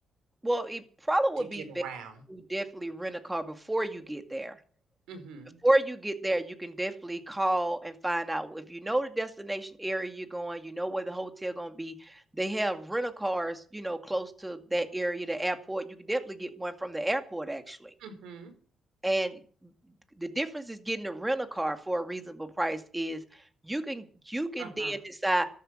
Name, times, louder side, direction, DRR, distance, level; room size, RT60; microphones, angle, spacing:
voice 1, 0.4-1.7 2.3-4.6 5.6-17.9 19.0-19.7 20.2-25.5, right 1 dB, 10° right, 7 dB, 2.2 m, -31 dB
voice 2, 1.4-2.2 5.1-5.5 18.0-18.5 24.6-25.0, right 6 dB, 90° right, 8 dB, 4.5 m, -43 dB
13.5 x 12.5 x 6.5 m, 0.44 s
cardioid pair, 90°, 0 cm